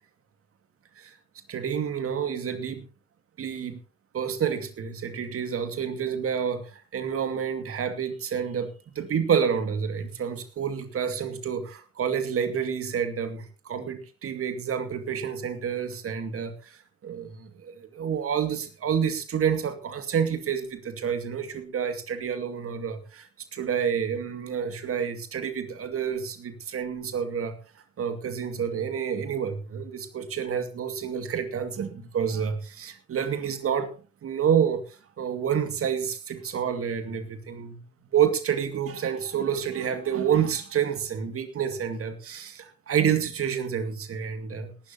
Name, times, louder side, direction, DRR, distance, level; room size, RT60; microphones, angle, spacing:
voice 1, 1.5-2.8 3.4-3.8 4.1-27.6 28.0-33.9 34.2-34.8 35.2-37.8 38.1-44.9, right 7 dB, 50° right, 8 dB, 2.4 m, -29 dB
18.5 x 12.0 x 3.0 m, 0.34 s
hypercardioid pair, 55°, 29 cm